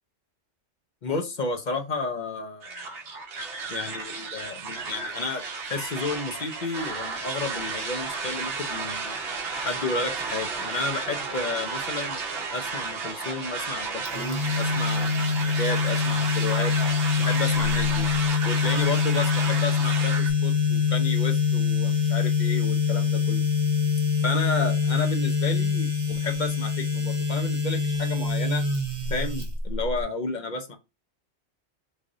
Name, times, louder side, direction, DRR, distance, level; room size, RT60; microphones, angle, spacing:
voice 1, 1.0-2.9 3.7-5.4 5.7-9.2 9.6-12.2 12.5-16.8 17.2-18.1 18.4-23.4 24.2-28.6 29.1-30.8, left 3 dB, 50° left, 0.7 m, -32 dB
sound 1, 2.6-20.3, right 4 dB, 60° right, 0.9 m, -32 dB
sound 2, 14.1-30.0, left 5 dB, 30° right, 0.8 m, -25 dB
3.3 x 2.5 x 3.7 m
omnidirectional pair, 1.2 m